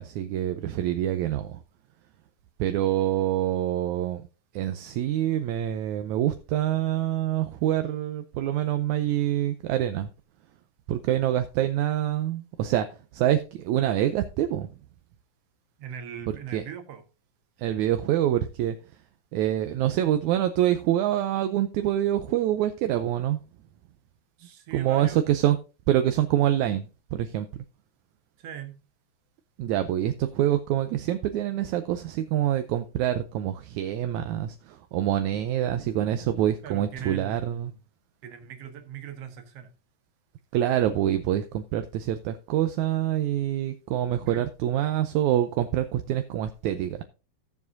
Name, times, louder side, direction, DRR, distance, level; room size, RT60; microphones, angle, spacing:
voice 1, 0.0-1.6 2.6-4.2 4.5-10.1 10.9-12.9 13.1-14.7 16.5-16.6 17.6-18.8 19.3-23.4 24.7-25.6 25.9-26.9 27.1-27.5 29.6-37.7 40.5-47.0, right 12 dB, 75° right, 1.8 m, -26 dB
voice 2, 15.8-17.0 24.4-25.3 28.4-28.8 36.6-37.8 38.2-39.7 44.3-44.4, right 8 dB, 55° right, 2.2 m, -40 dB
15.5 x 7.2 x 2.7 m
omnidirectional pair, 3.9 m